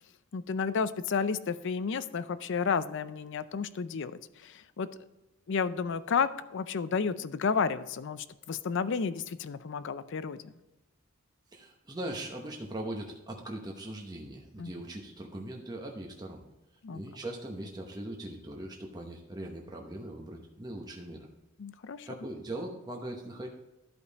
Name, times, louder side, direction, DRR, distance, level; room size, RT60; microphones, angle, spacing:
voice 1, 0.3-4.9 5.5-10.5 14.6-14.7 16.8-17.0 21.6-22.1, left 5 dB, 60° left, 14 dB, 0.5 m, -32 dB
voice 2, 11.5-16.4 16.9-21.3 22.1-23.5, right 1 dB, 20° right, 0 dB, 0.9 m, -40 dB
12.0 x 5.3 x 4.1 m, 1.0 s
head